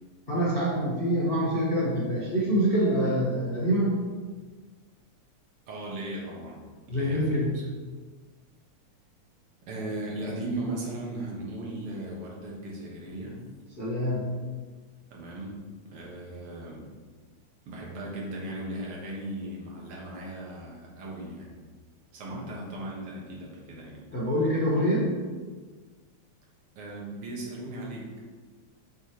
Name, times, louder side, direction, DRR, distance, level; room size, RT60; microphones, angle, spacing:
voice 1, 0.3-3.9 6.9-7.6 13.8-14.3 22.4-22.5 24.1-25.1, equal, 70° left, -7 dB, 0.5 m, -25 dB
voice 2, 5.7-7.6 9.7-13.4 15.1-16.9 17.7-21.5 22.1-24.1 26.8-28.2, right 1 dB, 55° right, -3 dB, 2.1 m, -37 dB
8.0 x 6.2 x 3.2 m, 1.4 s
omnidirectional pair, 3.4 m